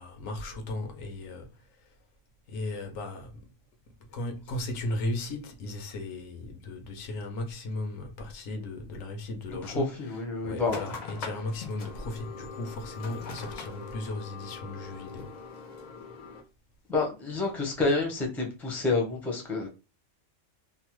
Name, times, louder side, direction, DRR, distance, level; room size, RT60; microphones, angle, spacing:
voice 1, 0.0-1.5 2.5-3.3 4.1-15.4, left 1 dB, 90° left, 1.1 m, -36 dB
voice 2, 9.6-10.8 16.9-19.7, left 3 dB, ahead, 0.5 m, -29 dB
sound 1, 10.7-16.4, left 4 dB, 55° left, 0.5 m, -42 dB
2.9 x 2.0 x 3.0 m
omnidirectional pair, 1.3 m